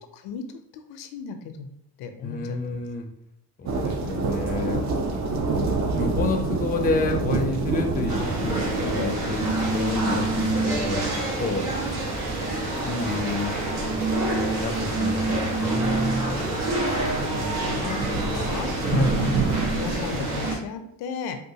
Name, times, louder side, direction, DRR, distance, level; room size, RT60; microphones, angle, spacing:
voice 1, 0.1-2.6 3.6-3.8 16.3-18.7 19.2-19.5 19.7-21.4, left 5 dB, 75° left, 7 dB, 0.5 m, -36 dB
voice 2, 2.2-3.1 3.6-4.8 5.5-11.0 11.4-11.6 12.8-13.6 14.6-16.4 18.9-19.2, left 3 dB, 20° left, 5 dB, 0.5 m, -29 dB
sound 1, 3.7-20.2, right 3 dB, 45° right, 0.6 m, -30 dB
sound 2, 8.1-20.6, right 2 dB, 75° right, 1.4 m, -27 dB
3.7 x 2.4 x 2.7 m, 0.73 s
cardioid pair, 95°, 40 cm